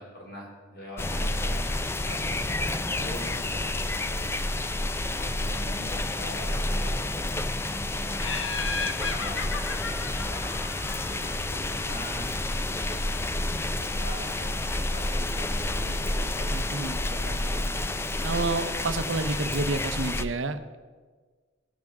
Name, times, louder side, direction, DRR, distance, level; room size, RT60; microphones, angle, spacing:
voice 1, 0.0-1.7 2.0-4.4 5.1-8.2 8.7-10.6 11.0-12.3 12.6-14.6 14.9-16.6 17.0-17.4, equal, 55° left, -1 dB, 3.5 m, -43 dB
sound 1, 1.0-20.2, left 2 dB, 15° left, 0.4 m, -29 dB
Laughter, 8.2-11.5, left 4 dB, 85° left, 1.1 m, -34 dB
voice 2, 16.4-17.0 17.8-17.9 18.2-20.8, right 3 dB, 75° right, 11 dB, 0.7 m, -30 dB
17.5 x 5.9 x 6.4 m, 1.5 s
head